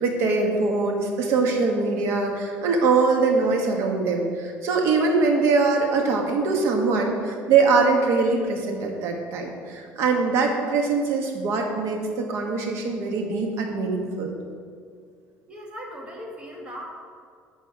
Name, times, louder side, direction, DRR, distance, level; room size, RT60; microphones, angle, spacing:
voice 1, 0.0-14.4, right 4 dB, 65° right, 2 dB, 1.4 m, -22 dB
voice 2, 15.5-16.9, equal, 20° right, -1 dB, 1.4 m, -38 dB
8.9 x 5.1 x 4.8 m, 2.1 s
cardioid pair, 140°, 5 cm